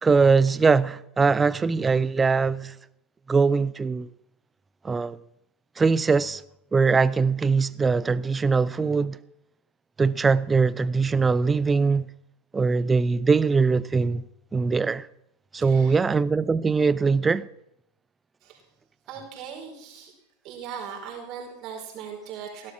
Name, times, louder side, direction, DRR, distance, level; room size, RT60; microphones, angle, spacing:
voice 1, 0.0-2.7 3.3-4.1 4.8-5.2 5.8-6.4 6.7-9.2 10.0-12.1 12.5-14.2 14.5-15.1 15.5-17.5, right 4 dB, 15° right, 0.5 m, -21 dB
voice 2, 15.6-16.0 18.4-18.6 19.1-20.1 20.4-22.7, right 7 dB, 35° right, 5.2 m, -39 dB
16.5 x 12.0 x 6.1 m
figure-of-eight pair, 90°, 0 cm